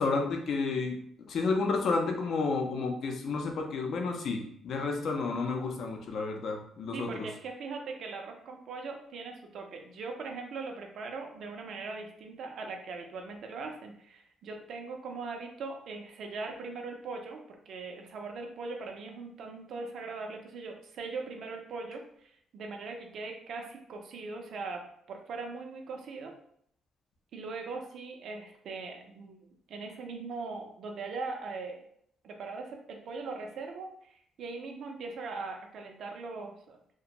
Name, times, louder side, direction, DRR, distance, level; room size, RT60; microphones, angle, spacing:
voice 1, 0.0-7.3, left 4 dB, 65° left, 3 dB, 0.5 m, -31 dB
voice 2, 6.9-26.3 27.3-31.8 32.2-36.8, right 4 dB, 70° right, 3 dB, 0.5 m, -40 dB
2.5 x 2.1 x 2.9 m, 0.67 s
cardioid pair, 90°, 0 cm